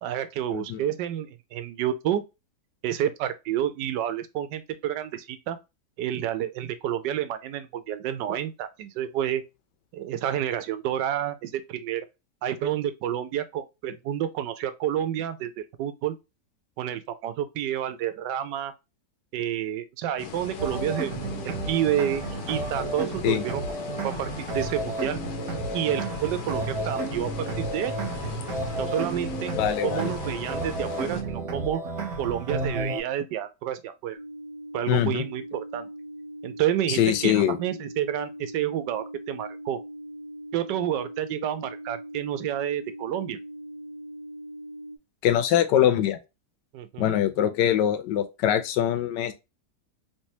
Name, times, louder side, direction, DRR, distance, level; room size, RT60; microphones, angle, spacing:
voice 1, 0.0-2.2 2.8-5.6 6.0-9.4 9.9-12.0 12.4-16.1 16.8-18.7 19.3-23.6 24.0-25.2 25.7-28.0 28.8-29.5 29.8-31.9 32.2-34.2 34.7-35.9 36.4-39.8 40.5-43.4 46.7-47.1, right 11 dB, 85° right, 1.2 m, -29 dB
sound 1, 20.2-31.2, left 8 dB, 70° left, 1.1 m, -39 dB
sound 2, 20.6-33.0, right 2 dB, 60° right, 1.3 m, -32 dB
voice 2, 29.6-30.1 34.9-35.2 36.9-37.6 45.2-46.2 47.0-49.3, left 11 dB, 90° left, 1.2 m, -23 dB
sound 3, 34.1-45.0, right 1 dB, 50° left, 0.4 m, -41 dB
3.3 x 3.0 x 2.6 m
omnidirectional pair, 1.8 m